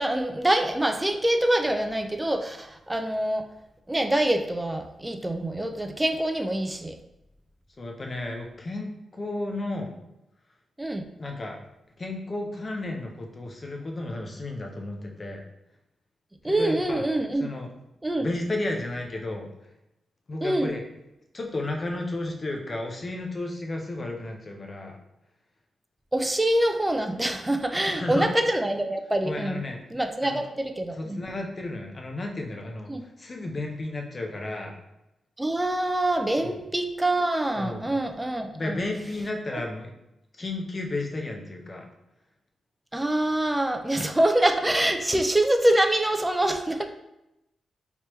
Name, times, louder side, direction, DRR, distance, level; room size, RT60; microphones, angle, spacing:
voice 1, 0.0-3.4 3.9-7.0 10.8-11.0 16.4-17.5 18.0-18.3 20.4-20.7 26.1-29.6 29.9-31.2 32.9-33.0 35.4-38.8 39.5-39.6 42.9-46.9, right 1 dB, 10° right, 6 dB, 0.4 m, -25 dB
voice 2, 7.8-9.9 11.2-11.6 12.0-15.4 16.4-17.1 17.3-17.7 18.2-19.5 20.3-20.8 21.3-25.0 27.8-28.3 29.2-29.8 30.2-30.4 30.9-32.9 33.2-34.8 36.4-36.6 37.6-38.0 38.5-39.9 40.4-41.9, left 2 dB, 35° left, 2 dB, 0.6 m, -33 dB
3.3 x 2.9 x 3.0 m, 0.89 s
cardioid pair, 105°, 0 cm